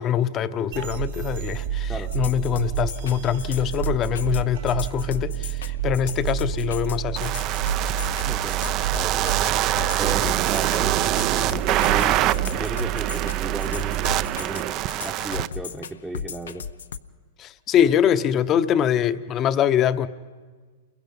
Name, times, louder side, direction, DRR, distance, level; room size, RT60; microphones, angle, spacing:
voice 1, 0.0-7.3 17.4-20.1, left 9 dB, 30° left, 12 dB, 0.8 m, -23 dB
sound 1, 0.7-14.2, right 11 dB, 65° right, 1.8 m, -29 dB
sound 2, 2.1-17.0, left 7 dB, 85° left, 0.7 m, -35 dB
sound 3, 7.2-15.5, right 14 dB, 40° right, 0.6 m, -25 dB
voice 2, 8.2-9.4 10.0-12.2 12.5-14.0 14.4-16.7, right 2 dB, 5° right, 2 dB, 0.9 m, -35 dB
29.0 x 22.0 x 5.4 m, 1.5 s
hypercardioid pair, 125°, 0 cm